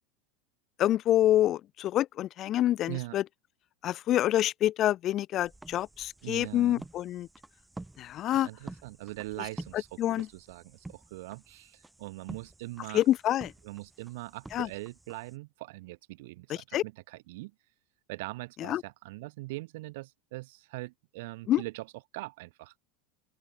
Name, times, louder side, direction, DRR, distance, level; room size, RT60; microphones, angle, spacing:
voice 1, 0.8-3.2 3.8-7.3 8.0-8.5 10.0-10.3 12.9-13.5 14.5-14.7 16.7-16.8 18.6-18.8 21.5-21.6, left 13 dB, 45° left, 1.0 m, -27 dB
voice 2, 2.9-3.2 6.2-6.8 8.3-13.0 13.6-17.5 18.1-21.9 22.1-22.7, right 21 dB, 70° right, 3.6 m, -41 dB
sound 1, 5.4-15.4, right 2 dB, 10° right, 2.5 m, -49 dB
open air
hypercardioid pair, 90°, 0 cm